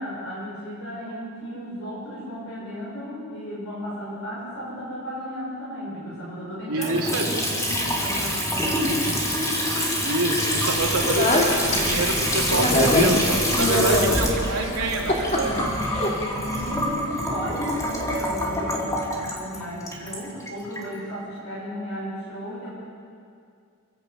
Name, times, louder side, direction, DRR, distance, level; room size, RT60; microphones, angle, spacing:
voice 1, 0.0-9.2 16.5-22.7, equal, 70° left, -8 dB, 7.0 m, -35 dB
voice 2, 6.7-7.3 10.0-15.7, right 2 dB, 85° right, 0 dB, 3.1 m, -26 dB
Water tap faucet / Sink (filling or washing) / Trickle dribble, 6.8-20.9, equal, 15° left, 2.7 m, -26 dB
Speech, 10.8-16.8, left 1 dB, 30° left, 2.6 m, -25 dB
29.0 x 11.0 x 8.3 m, 2.3 s
head